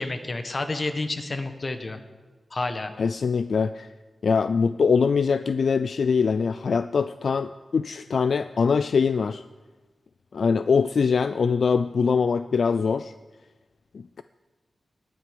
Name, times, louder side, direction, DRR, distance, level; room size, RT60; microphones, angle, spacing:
voice 1, 0.0-2.0 2.5-2.9, left 2 dB, 35° left, 8 dB, 1.1 m, -29 dB
voice 2, 3.0-3.9 4.2-9.4 10.3-13.1 13.9-14.2, left 5 dB, 60° left, 12 dB, 0.3 m, -23 dB
19.5 x 9.5 x 5.1 m, 1.3 s
wide cardioid pair, 160°, 0 cm